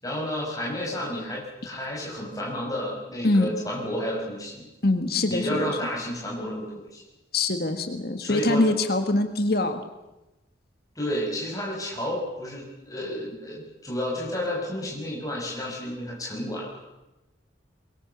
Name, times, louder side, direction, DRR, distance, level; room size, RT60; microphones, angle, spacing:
voice 1, 0.0-4.6 5.3-7.0 8.2-8.7 10.9-16.8, equal, 20° left, -2 dB, 6.0 m, -31 dB
voice 2, 4.8-5.7 7.3-9.8, left 2 dB, 55° left, 7 dB, 1.8 m, -23 dB
23.5 x 22.5 x 7.0 m, 1.0 s
head